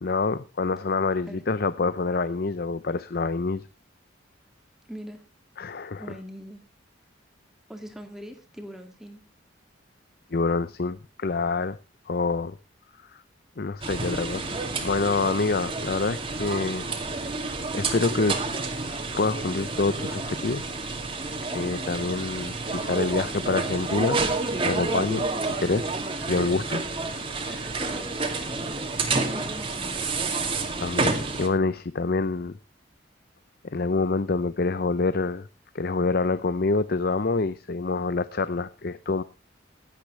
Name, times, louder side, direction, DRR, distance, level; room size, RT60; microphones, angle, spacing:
voice 1, 0.0-3.6 5.6-6.0 10.3-11.8 12.1-12.6 13.6-16.8 17.7-18.4 19.1-20.7 21.5-24.2 24.6-25.9 26.2-26.8 27.4-27.7 30.8-32.5 33.7-35.5 35.7-39.2, left 3 dB, 55° left, 15 dB, 0.6 m, -26 dB
voice 2, 4.9-5.2 6.0-6.6 7.7-9.2 22.9-23.6 27.6-28.2 28.5-28.8 29.3-30.1, equal, ahead, 5 dB, 2.1 m, -42 dB
sound 1, 13.8-31.5, right 3 dB, 30° right, 2.3 m, -29 dB
16.5 x 12.0 x 3.2 m, 0.30 s
head